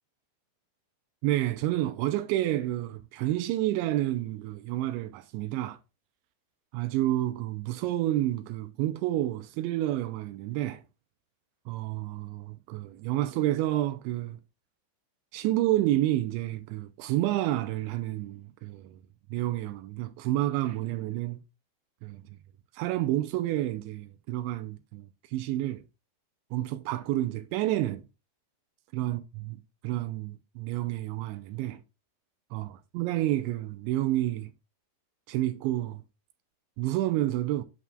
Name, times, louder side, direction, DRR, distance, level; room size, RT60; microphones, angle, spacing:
voice 1, 1.2-5.8 6.7-10.8 11.7-14.4 15.3-19.0 19.3-21.4 22.0-22.2 22.8-25.8 26.5-28.0 28.9-31.8 32.5-34.5 35.3-36.0 36.8-37.6, right 15 dB, 85° right, 2.8 m, -29 dB
8.2 x 7.1 x 2.4 m
omnidirectional pair, 5.4 m